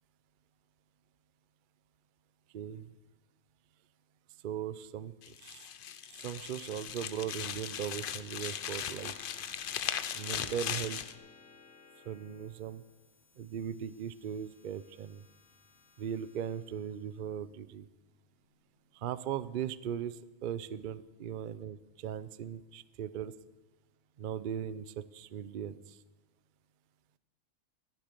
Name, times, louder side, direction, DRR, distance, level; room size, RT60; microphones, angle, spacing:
voice 1, 2.5-2.9 4.4-5.6 6.1-9.2 10.1-11.0 12.0-12.8 13.4-15.2 16.0-17.9 18.9-23.3 24.2-26.0, right 9 dB, 60° right, 15 dB, 0.5 m, -39 dB
sound 1, 5.2-11.1, left 9 dB, 55° left, 0.6 m, -38 dB
sound 2, 9.1-19.9, left 4 dB, 75° left, 1.6 m, -59 dB
14.0 x 9.3 x 6.7 m, 1.2 s
omnidirectional pair, 1.4 m